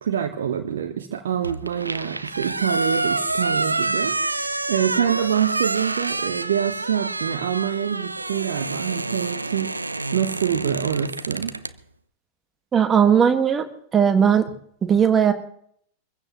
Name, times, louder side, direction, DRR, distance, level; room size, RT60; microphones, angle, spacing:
voice 1, 0.0-11.5, right 9 dB, 60° right, 5 dB, 1.2 m, -26 dB
sound 1, 1.4-11.7, right 2 dB, 80° right, 0.6 m, -28 dB
voice 2, 12.7-13.7 13.9-14.5 14.8-15.3, right 7 dB, 20° right, 7 dB, 1.8 m, -17 dB
24.0 x 15.5 x 3.1 m, 0.64 s
figure-of-eight pair, 90°, 0 cm